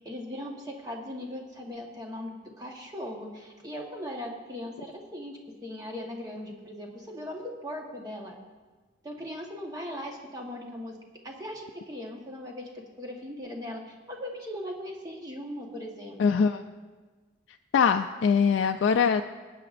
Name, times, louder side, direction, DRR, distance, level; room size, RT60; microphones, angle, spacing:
voice 1, 0.0-8.4 9.0-11.0 11.2-16.5, left 1 dB, 20° right, 0 dB, 1.2 m, -39 dB
voice 2, 16.2-16.6 17.7-19.2, left 6 dB, 80° left, 6 dB, 0.3 m, -22 dB
18.5 x 8.5 x 2.5 m, 1.3 s
head